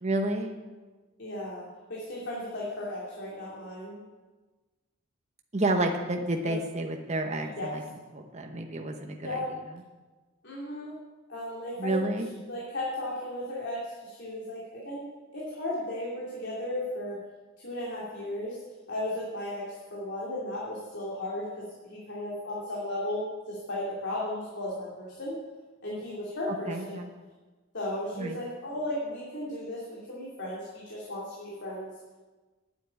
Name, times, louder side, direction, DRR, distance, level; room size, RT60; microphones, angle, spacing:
voice 1, 0.0-0.6 5.5-7.8 8.1-9.8 11.8-12.4 26.5-27.1 28.1-28.4, right 2 dB, 35° right, 3 dB, 0.9 m, -30 dB
voice 2, 1.2-4.0 6.4-6.5 7.6-7.7 9.2-9.4 10.4-10.9 11.3-12.0 12.5-15.0 15.3-17.2 17.6-18.6 18.9-19.6 19.9-25.4 25.8-26.9 27.7-31.9, left 1 dB, 60° left, -5 dB, 2.8 m, -35 dB
9.5 x 8.2 x 9.0 m, 1.3 s
head